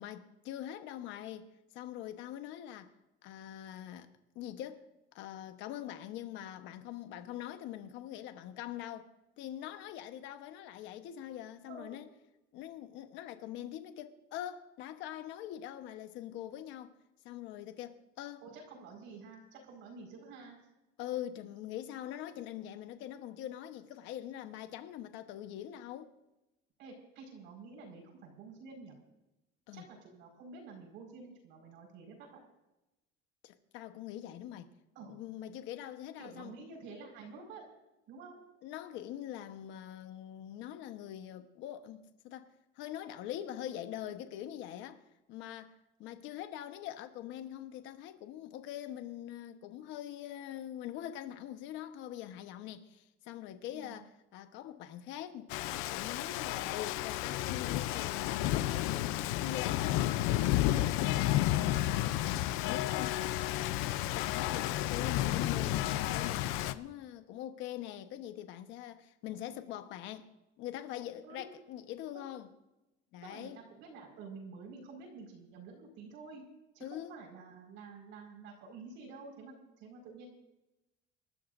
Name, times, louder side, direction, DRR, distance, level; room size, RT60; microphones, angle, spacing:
voice 1, 0.0-1.5 1.7-2.9 3.2-4.1 4.3-4.8 5.1-9.1 9.4-12.1 12.5-17.0 17.2-18.4 21.0-26.1 29.7-29.9 33.4-34.7 35.1-36.6 38.6-45.0 45.3-45.7 46.0-65.8 66.1-70.3 70.6-72.5 73.1-73.6 76.8-77.2, left 11 dB, 60° left, 1.2 m, -43 dB
voice 2, 18.4-20.6 26.8-28.9 29.7-32.3 34.9-35.2 36.2-37.7 38.1-38.4 53.7-54.0 60.7-61.1 71.2-71.5 73.2-76.4 76.7-80.3, right 4 dB, 65° right, 5.3 m, -50 dB
Rain, 55.5-66.7, left 14 dB, 80° left, 0.6 m, -32 dB
27.0 x 13.5 x 2.7 m
cardioid pair, 170°, 21 cm